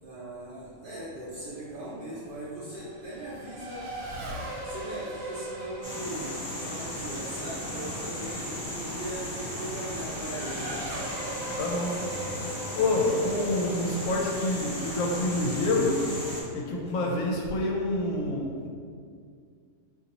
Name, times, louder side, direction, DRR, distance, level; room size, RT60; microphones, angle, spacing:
voice 1, 0.0-3.8 4.6-10.7 17.0-17.2, right 1 dB, 50° right, -8 dB, 0.7 m, -39 dB
Race car auto racing / Accelerating revving vroom, 1.3-15.4, right 1 dB, 75° right, 1.1 m, -41 dB
sound 1, 5.8-16.4, equal, 35° left, 0.4 m, -36 dB
voice 2, 11.6-12.0 12.7-16.0 16.5-18.7, left 2 dB, 75° left, -1 dB, 0.9 m, -27 dB
3.9 x 2.6 x 2.9 m, 2.2 s
omnidirectional pair, 1.4 m